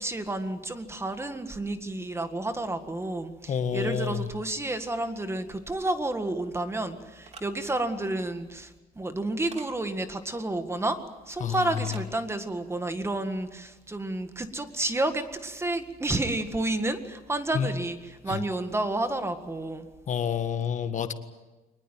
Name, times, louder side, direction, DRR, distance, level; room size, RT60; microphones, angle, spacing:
voice 1, 0.0-19.9, right 2 dB, 15° right, 9 dB, 1.8 m, -30 dB
voice 2, 3.5-4.3 11.4-11.6 17.5-17.7 18.3-18.4 20.1-21.1, left 8 dB, 45° left, 9 dB, 1.7 m, -28 dB
sound 1, 7.2-7.5 9.5-9.7 11.8-12.1, right 4 dB, 40° right, 3.3 m, -45 dB
23.5 x 20.0 x 9.1 m, 1.1 s
cardioid pair, 110°, 17 cm